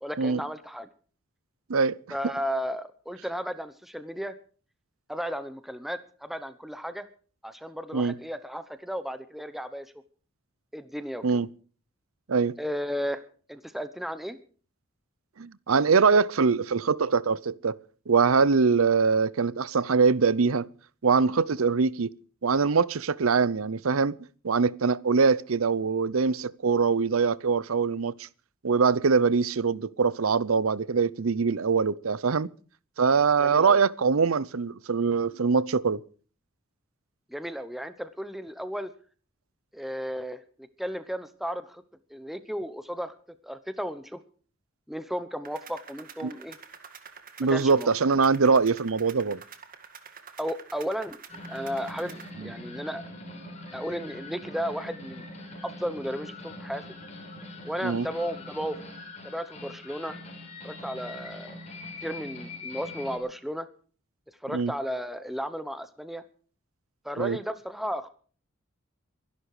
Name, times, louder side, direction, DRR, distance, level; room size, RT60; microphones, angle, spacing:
voice 1, 0.0-0.9 2.1-4.4 5.1-7.1 7.4-9.9 10.7-11.4 12.6-13.2 13.5-14.4 33.4-33.8 37.3-38.9 39.7-41.8 42.1-43.2 43.4-44.2 44.9-46.6 47.5-47.9 50.4-51.2 51.5-53.0 53.7-55.2 55.6-56.8 57.6-58.8 59.2-60.1 60.6-61.6 62.0-63.7 64.4-66.2 67.0-68.1, equal, ahead, 0.9 m, -34 dB
voice 2, 15.4-17.8 18.1-20.7 21.0-22.1 22.4-24.1 24.4-28.1 28.6-32.5 33.0-36.0 46.2-46.3 47.4-49.4 52.4-52.5 57.8-58.1 64.5-64.7 67.2-67.4, right 5 dB, 85° right, 0.7 m, -23 dB
sound 1, 45.4-52.3, right 6 dB, 45° right, 1.9 m, -48 dB
sound 2, 51.3-63.2, left 2 dB, 35° left, 4.4 m, -42 dB
23.0 x 11.5 x 4.9 m
head